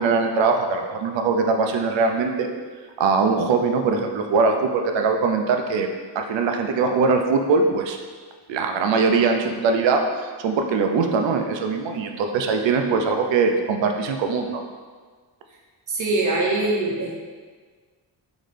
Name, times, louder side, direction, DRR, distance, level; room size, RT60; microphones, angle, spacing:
voice 1, 0.0-2.5 3.0-5.9 6.1-8.0 8.5-14.6, right 4 dB, 85° right, 4 dB, 0.6 m, -21 dB
voice 2, 15.9-17.2, right 2 dB, 45° right, -1 dB, 0.7 m, -23 dB
4.0 x 3.1 x 3.3 m, 1.5 s
wide cardioid pair, 160°, 43 cm